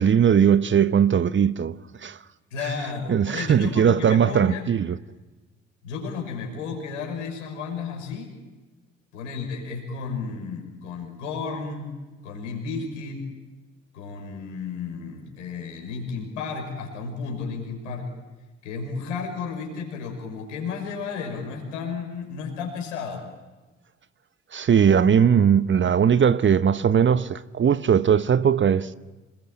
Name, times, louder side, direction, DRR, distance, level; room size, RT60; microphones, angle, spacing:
voice 1, 0.0-2.2 3.1-5.0 24.5-28.9, right 8 dB, 30° right, 0.9 m, -19 dB
voice 2, 2.5-4.6 5.8-8.3 9.1-11.9 12.2-13.3 13.9-18.1 18.6-23.2, left 5 dB, 75° left, 5.8 m, -33 dB
27.0 x 21.0 x 8.9 m
figure-of-eight pair, 45°, 37 cm